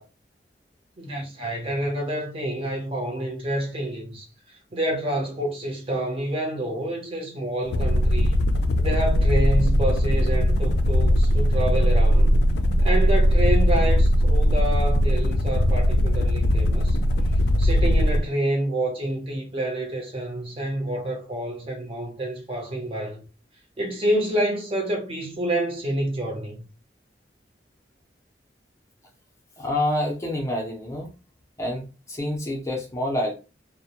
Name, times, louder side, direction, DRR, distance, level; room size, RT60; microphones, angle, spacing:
voice 1, 1.0-4.3 4.7-8.4 8.8-12.4 12.8-17.0 17.6-23.2 23.8-26.7, right 1 dB, 35° right, 0.8 m, -28 dB
sound 1, 7.6-18.3, equal, 70° left, 0.3 m, -20 dB
voice 2, 29.6-31.1 31.6-33.3, left 1 dB, 15° left, 0.5 m, -27 dB
2.1 x 2.1 x 2.8 m
head